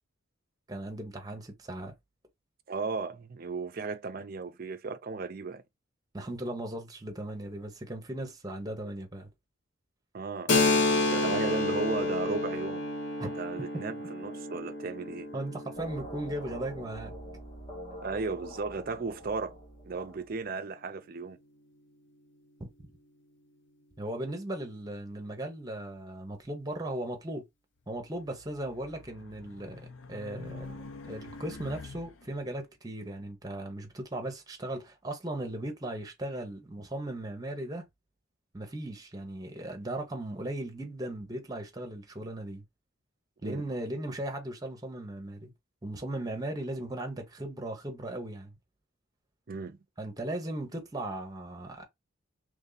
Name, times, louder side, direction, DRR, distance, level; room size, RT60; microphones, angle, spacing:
voice 1, 0.7-1.9 6.1-9.3 13.2-13.3 15.3-17.1 22.6-22.7 24.0-27.5 27.9-30.7 31.0-37.8 38.5-42.6 43.4-45.5 45.8-48.5 50.0-51.8, right 1 dB, 20° right, 0.9 m, -37 dB
voice 2, 2.7-5.6 10.1-12.9 13.4-15.3 18.0-19.6 19.8-21.4 43.4-43.6 49.5-49.8, right 4 dB, 45° right, 0.4 m, -35 dB
Keyboard (musical), 10.5-17.9, left 2 dB, 55° left, 1.0 m, -30 dB
sound 1, 15.8-20.4, equal, 25° left, 0.9 m, -45 dB
Race car auto racing, 28.1-32.5, left 3 dB, 80° left, 0.6 m, -46 dB
3.1 x 2.6 x 3.9 m
head